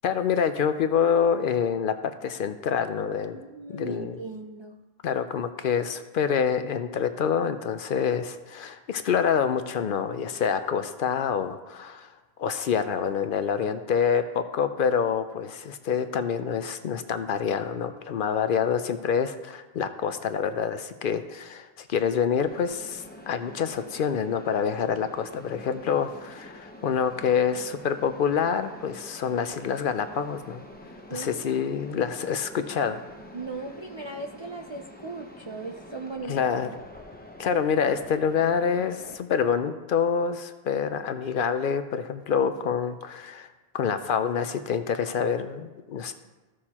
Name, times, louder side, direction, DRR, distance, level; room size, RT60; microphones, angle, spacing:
voice 1, 0.0-3.4 3.7-4.2 5.0-12.1 12.4-30.6 31.1-33.0 36.3-36.8 37.4-43.5 43.7-46.1, left 7 dB, 65° left, 9 dB, 0.7 m, -27 dB
voice 2, 3.3-4.8 31.1-31.4 33.3-36.5, right 3 dB, 40° right, 3 dB, 0.4 m, -38 dB
Mechanisms, 22.4-39.1, left 1 dB, 10° left, 0.7 m, -46 dB
15.0 x 6.3 x 2.9 m, 1.2 s
omnidirectional pair, 1.0 m